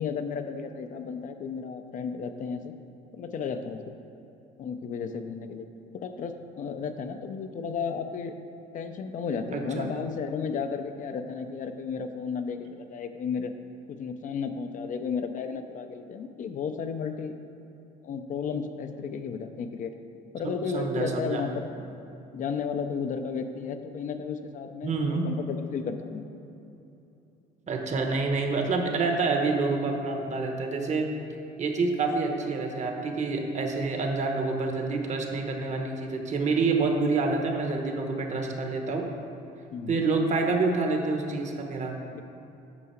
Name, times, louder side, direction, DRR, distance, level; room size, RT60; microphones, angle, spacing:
voice 1, 0.0-2.7 3.1-3.8 4.6-5.7 5.9-8.3 8.7-13.5 13.9-17.4 18.0-19.9 20.3-21.7 22.3-26.2 39.7-40.0 42.1-42.2, left 6 dB, 50° left, 7 dB, 0.5 m, -33 dB
voice 2, 9.5-9.9 20.4-21.4 24.8-25.3 27.7-31.1 31.6-39.1 39.9-42.0, right 3 dB, 45° right, 3 dB, 1.0 m, -27 dB
8.6 x 5.5 x 4.4 m, 2.9 s
cardioid pair, 110°, 17 cm